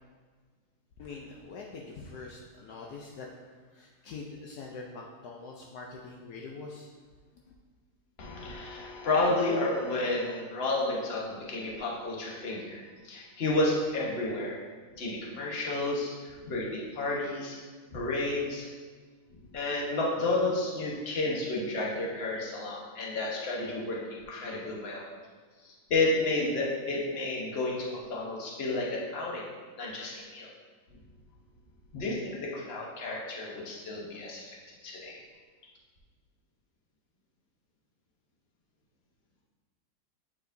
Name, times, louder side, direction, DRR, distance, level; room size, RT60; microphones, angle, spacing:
voice 1, 1.0-3.3 3.7-6.9 7.3-7.4, left 4 dB, 70° left, -1 dB, 1.1 m, -44 dB
voice 2, 8.2-14.6 15.0-17.6 17.9-18.7 19.3-25.0 25.6-29.4 29.8-30.5 31.9-34.5 34.8-35.2, left 2 dB, 40° left, -3 dB, 1.2 m, -31 dB
8.6 x 4.7 x 2.6 m, 1.5 s
omnidirectional pair, 1.8 m